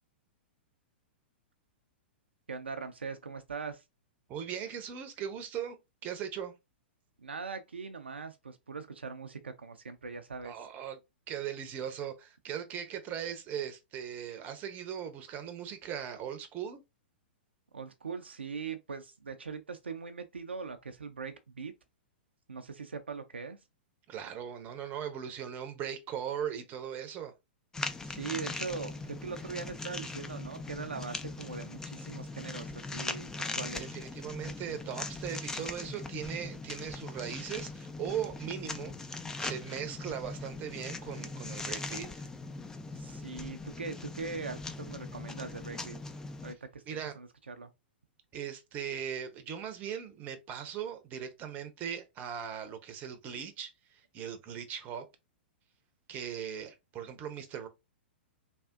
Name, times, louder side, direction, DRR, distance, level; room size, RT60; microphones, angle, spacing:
voice 1, 2.5-3.8 7.2-10.5 17.7-21.7 22.5-23.6 28.0-33.8 42.9-46.0 46.4-47.7, right 5 dB, 80° right, 0.4 m, -41 dB
voice 2, 4.3-5.8 6.0-6.5 10.4-11.0 11.3-16.8 24.1-27.3 33.8-38.9 39.4-42.3 46.9-47.1 48.3-55.1 56.1-57.7, right 8 dB, 30° right, 0.7 m, -39 dB
sound 1, 27.7-46.5, left 3 dB, 10° left, 0.3 m, -40 dB
3.4 x 2.4 x 2.4 m
figure-of-eight pair, 105°, 6 cm